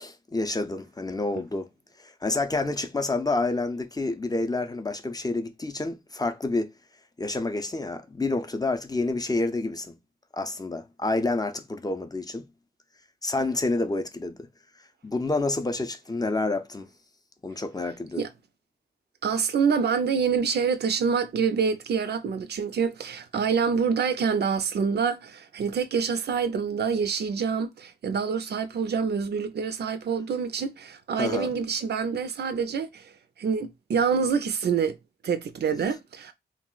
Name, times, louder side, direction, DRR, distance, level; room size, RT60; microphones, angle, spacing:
voice 1, 0.0-1.7 2.0-6.7 7.2-10.0 10.3-12.5 13.2-14.4 15.0-16.9 17.4-18.2 31.2-31.5, left 2 dB, 20° left, 0.5 m, -28 dB
voice 2, 19.2-33.1 33.4-35.0 35.2-36.3, right 6 dB, 75° right, 0.4 m, -26 dB
2.3 x 2.0 x 3.8 m
cardioid pair, 55°, 17 cm